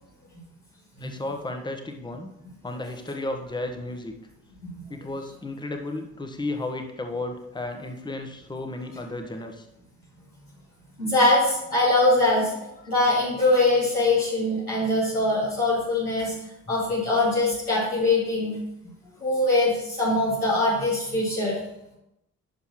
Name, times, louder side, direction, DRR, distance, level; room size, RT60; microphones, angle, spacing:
voice 1, 1.0-2.3 2.6-4.1 4.9-9.7, left 2 dB, 10° left, 5 dB, 1.1 m, -33 dB
voice 2, 11.0-16.3 16.7-18.6 19.2-21.5, left 2 dB, 90° left, -10 dB, 2.9 m, -22 dB
10.5 x 6.8 x 3.1 m, 0.86 s
figure-of-eight pair, 40°, 43 cm